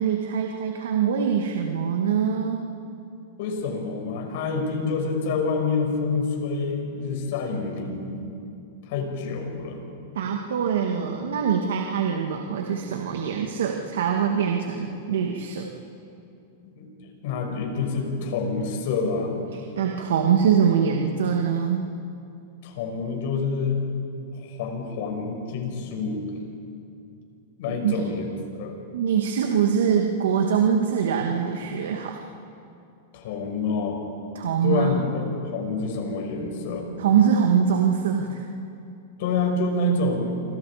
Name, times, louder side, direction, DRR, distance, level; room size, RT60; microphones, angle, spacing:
voice 1, 0.0-2.6 10.1-15.7 19.5-21.9 27.7-28.0 28.9-32.2 34.3-34.9 37.0-38.4, right 7 dB, 85° right, 2 dB, 2.2 m, -23 dB
voice 2, 3.4-8.3 8.9-9.8 16.6-19.4 22.6-23.8 24.3-26.2 27.6-28.3 28.6-28.8 33.1-34.0 34.6-36.9 39.2-40.4, left 3 dB, 60° left, 2 dB, 6.5 m, -27 dB
29.5 x 26.0 x 5.2 m, 2.6 s
hypercardioid pair, 140°, 0 cm